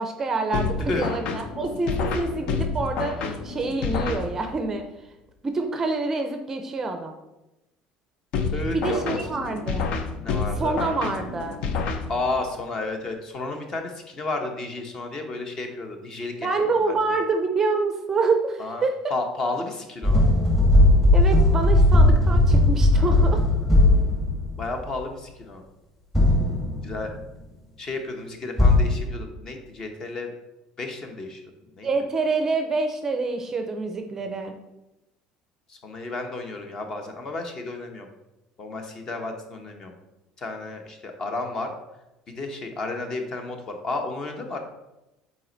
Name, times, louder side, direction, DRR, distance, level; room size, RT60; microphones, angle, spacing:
voice 1, 0.0-4.8 5.4-7.1 8.7-9.9 10.6-11.6 16.4-18.9 21.1-23.4 31.8-34.5, right 3 dB, 20° right, 5 dB, 0.5 m, -26 dB
sound 1, 0.5-4.7 8.3-12.5, left 4 dB, 55° left, 0.7 m, -29 dB
voice 2, 0.9-1.3 8.5-9.2 10.2-10.8 12.1-17.0 18.6-18.8 19.1-20.2 22.9-23.4 24.6-25.7 26.8-27.1 27.8-30.3 30.8-31.4 31.8-31.9 34.1-34.2 35.7-38.1 38.6-39.9 40.4-41.7 42.3-44.6, left 2 dB, 30° left, 4 dB, 1.0 m, -32 dB
sound 2, 20.0-24.7 26.1-27.0 28.6-29.0, left 1 dB, 15° left, 1.4 m, -17 dB
7.5 x 4.3 x 3.9 m, 0.96 s
cardioid pair, 160°, 2 cm